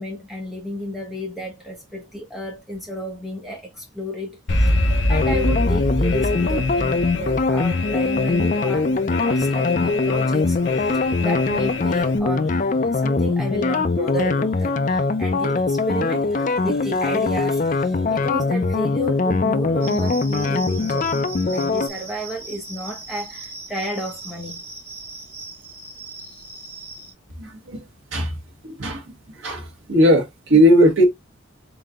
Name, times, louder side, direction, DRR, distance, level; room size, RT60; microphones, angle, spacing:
voice 1, 0.0-8.9 9.2-21.1 21.4-24.6, equal, ahead, 1.3 m, -32 dB
Alarm, 4.5-12.2, left 1 dB, 65° left, 0.7 m, -25 dB
sound 1, 5.1-21.9, left 3 dB, 40° left, 0.4 m, -22 dB
sound 2, 19.8-27.1, right 3 dB, 30° right, 2.4 m, -38 dB
voice 2, 27.4-27.8 28.1-28.4 28.6-29.0 29.4-31.0, equal, 75° right, 0.9 m, -17 dB
3.8 x 3.7 x 2.3 m
head